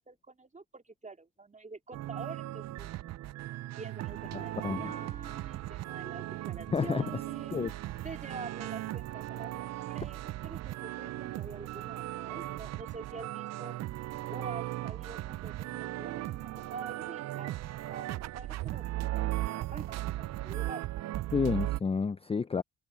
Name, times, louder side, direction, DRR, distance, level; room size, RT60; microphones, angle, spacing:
voice 1, 0.0-2.9 3.8-13.8 14.3-17.5 17.9-20.8, right 3 dB, 25° right, 3.8 m, -46 dB
sound 1, 1.9-21.8, right 15 dB, 60° right, 0.4 m, -37 dB
voice 2, 4.3-4.9 6.7-7.0 7.5-7.7 21.3-22.6, left 5 dB, 20° left, 0.5 m, -30 dB
cardioid pair, 90°, 30 cm